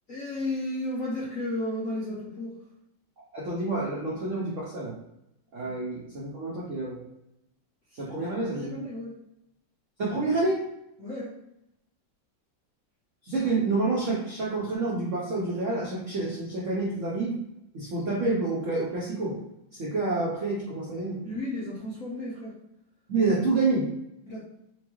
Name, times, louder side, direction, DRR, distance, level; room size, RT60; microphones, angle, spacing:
voice 1, 0.1-2.5 5.6-5.7 7.9-9.1 11.0-11.3 21.2-22.5 24.3-24.4, left 1 dB, 60° left, -7 dB, 0.9 m, -34 dB
voice 2, 3.3-4.9 5.5-7.0 7.9-8.7 10.0-10.6 13.2-17.4 17.7-19.4 19.7-21.2 23.1-23.9, right 3 dB, 65° right, -5 dB, 0.7 m, -28 dB
4.4 x 2.3 x 3.0 m, 0.84 s
omnidirectional pair, 2.3 m